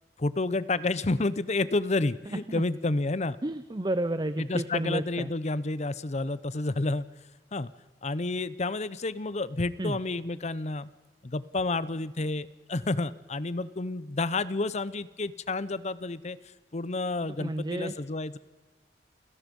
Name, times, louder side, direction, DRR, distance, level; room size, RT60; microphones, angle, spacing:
voice 1, 0.2-3.4 4.4-7.1 7.5-7.7 8.0-10.9 11.2-16.4 16.7-18.4, left 2 dB, 40° left, 17 dB, 0.7 m, -30 dB
voice 2, 3.4-5.3 9.8-10.0 17.4-17.9, right 1 dB, 25° right, 12 dB, 0.6 m, -31 dB
29.5 x 17.0 x 5.4 m, 1.3 s
head